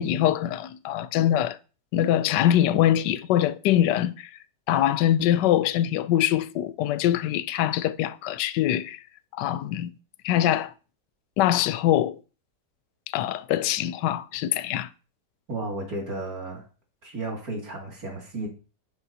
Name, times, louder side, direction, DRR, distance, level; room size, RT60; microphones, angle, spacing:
voice 1, 0.0-1.6 1.9-4.3 4.7-9.0 9.4-9.9 10.2-10.7 11.4-12.2 13.1-14.9, left 12 dB, 80° left, 1.2 m, -23 dB
voice 2, 15.5-16.7 17.0-18.5, right 2 dB, 55° right, 3.0 m, -33 dB
10.5 x 9.4 x 2.9 m
omnidirectional pair, 1.9 m